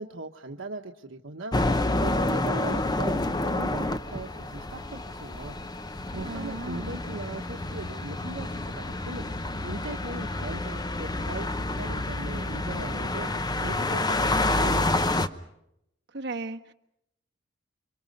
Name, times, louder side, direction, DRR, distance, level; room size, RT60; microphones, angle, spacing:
voice 1, 0.0-5.6 6.1-9.2 9.6-13.3 13.6-15.2, right 2 dB, 85° right, 3 dB, 1.3 m, -39 dB
sound 1, 1.5-15.3, left 2 dB, 20° left, 0.9 m, -29 dB
voice 2, 6.2-6.9 16.1-16.7, right 2 dB, 60° right, 3 dB, 1.5 m, -35 dB
29.5 x 25.0 x 5.4 m, 0.81 s
head